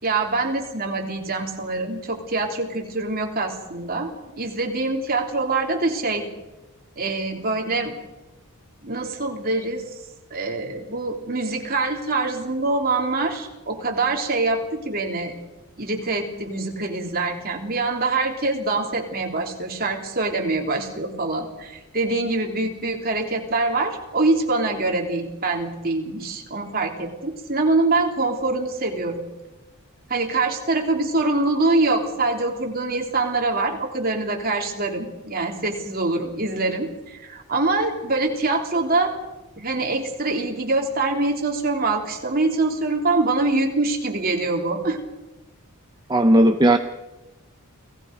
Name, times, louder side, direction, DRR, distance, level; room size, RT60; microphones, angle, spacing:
voice 1, 0.0-6.2 7.0-7.9 8.8-9.8 10.3-15.4 15.8-29.3 30.1-39.2 39.6-45.0, right 3 dB, 40° right, 2 dB, 3.2 m, -24 dB
voice 2, 46.1-46.8, right 1 dB, 20° right, 6 dB, 0.7 m, -15 dB
29.5 x 18.5 x 5.2 m, 1.0 s
head